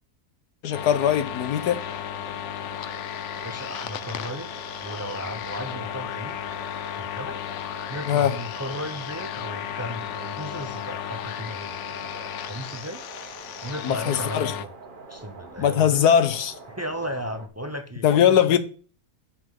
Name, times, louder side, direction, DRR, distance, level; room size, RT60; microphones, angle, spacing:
voice 1, 0.6-1.8 8.1-8.4 13.8-14.5 15.6-16.5 18.0-18.6, left 9 dB, 80° left, 1.5 m, -20 dB
sound 1, 0.7-14.7, left 11 dB, 60° left, 0.8 m, -35 dB
sound 2, 0.7-17.5, right 3 dB, 35° right, 1.3 m, -44 dB
voice 2, 3.3-4.5 4.8-6.4 6.9-7.4 7.9-13.0 13.6-14.7 15.1-16.1 16.8-18.6, equal, 20° right, 0.4 m, -35 dB
7.7 x 6.3 x 7.4 m
omnidirectional pair, 1.7 m